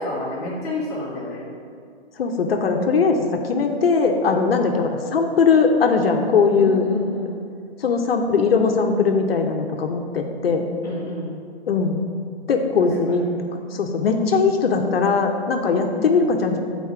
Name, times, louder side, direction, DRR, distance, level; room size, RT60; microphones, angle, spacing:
voice 1, 0.0-1.5 6.6-7.4 10.8-11.3 13.1-13.2, left 1 dB, 10° left, -11 dB, 0.8 m, -29 dB
voice 2, 2.2-3.2 3.5-6.8 7.8-10.7 11.7-12.0 12.5-16.6, left 5 dB, 65° left, 3 dB, 0.7 m, -20 dB
7.2 x 4.1 x 4.7 m, 2.2 s
hypercardioid pair, 160°, 32 cm